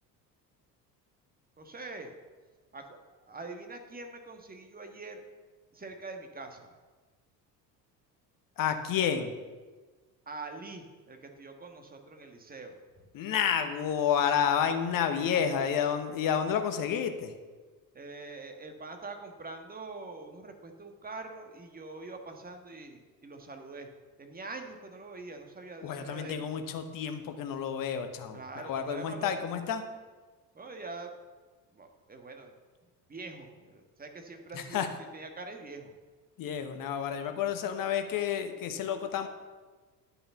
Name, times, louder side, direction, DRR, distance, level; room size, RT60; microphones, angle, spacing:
voice 1, 1.6-2.1 2.7-3.0 3.2-5.2 5.7-6.8 10.3-12.8 15.1-15.5 17.9-23.9 24.2-26.5 28.3-29.3 30.5-31.1 31.7-32.5 33.1-34.9 35.1-35.9, right 3 dB, 15° right, 5 dB, 1.5 m, -44 dB
voice 2, 8.6-9.3 13.1-17.3 25.8-29.8 34.5-34.9 36.4-39.3, left 8 dB, 40° left, 8 dB, 1.2 m, -30 dB
9.9 x 5.5 x 7.0 m, 1.4 s
figure-of-eight pair, 60°, 50 cm